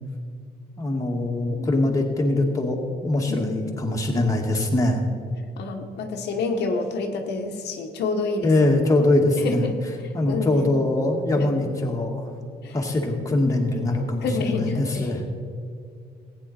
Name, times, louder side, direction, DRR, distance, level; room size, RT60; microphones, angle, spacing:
voice 1, 0.8-5.0 8.4-9.7 10.1-12.3 12.7-15.3, left 2 dB, 20° left, -1 dB, 2.0 m, -22 dB
voice 2, 1.6-1.9 3.3-4.0 5.6-8.5 9.4-9.7 10.3-10.7 11.3-11.5 12.6-12.8 14.2-15.2, left 4 dB, 80° left, 3 dB, 1.1 m, -29 dB
15.0 x 9.3 x 4.3 m, 2.3 s
cardioid pair, 100°, 17 cm